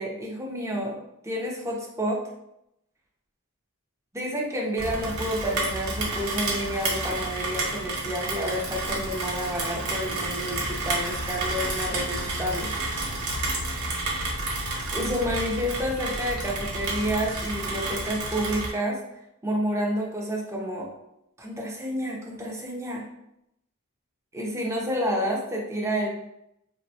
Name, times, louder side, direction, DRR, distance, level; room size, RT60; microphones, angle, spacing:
voice 1, 0.0-2.2 4.1-12.7 14.9-20.9 21.4-23.0 24.3-26.1, equal, 15° right, -2 dB, 0.5 m, -29 dB
Rain, 4.8-18.7, right 2 dB, 85° right, 0.7 m, -30 dB
3.4 x 2.1 x 2.7 m, 0.82 s
head